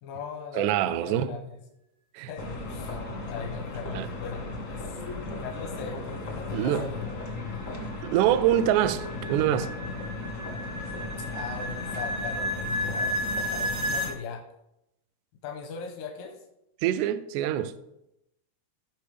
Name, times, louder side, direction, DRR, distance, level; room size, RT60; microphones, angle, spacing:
voice 1, 0.0-1.6 2.3-3.0 3.2-5.0 5.4-7.8 11.3-14.4 15.4-16.4, left 5 dB, 85° left, 2.6 m, -40 dB
voice 2, 0.5-1.4 2.1-2.3 3.9-4.1 6.5-6.9 8.0-9.7 16.8-17.7, right 11 dB, 85° right, 1.7 m, -25 dB
sound 1, 2.4-14.1, left 2 dB, 50° left, 0.9 m, -36 dB
sound 2, 7.0-14.1, equal, 55° right, 1.2 m, -33 dB
15.5 x 5.6 x 3.4 m
omnidirectional pair, 3.9 m